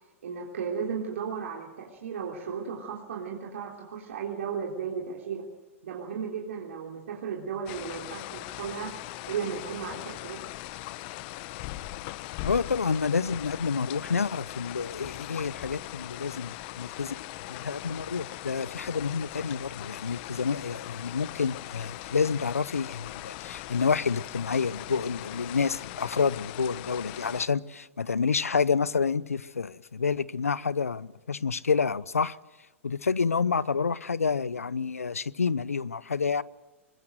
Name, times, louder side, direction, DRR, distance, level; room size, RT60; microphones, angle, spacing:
voice 1, 0.2-5.4 5.8-9.0 9.3-10.4, right 6 dB, 70° right, 3.6 m, -35 dB
sound 1, 7.7-27.5, left 18 dB, 45° left, 0.9 m, -40 dB
voice 2, 12.4-17.1 17.5-32.4 32.8-36.4, left 5 dB, 90° left, 0.7 m, -28 dB
23.5 x 21.5 x 7.8 m
hypercardioid pair, 110°, 8 cm